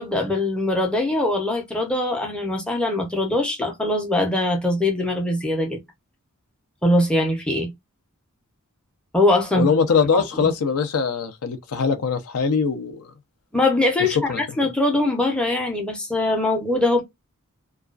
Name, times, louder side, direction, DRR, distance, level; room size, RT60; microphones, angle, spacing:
voice 1, 0.0-5.8 6.8-7.7 9.1-9.7 10.1-10.2 13.5-17.0, left 1 dB, 5° left, 0.6 m, -22 dB
voice 2, 9.5-13.1 14.0-14.4, left 5 dB, 75° left, 0.5 m, -22 dB
2.3 x 2.3 x 2.3 m
head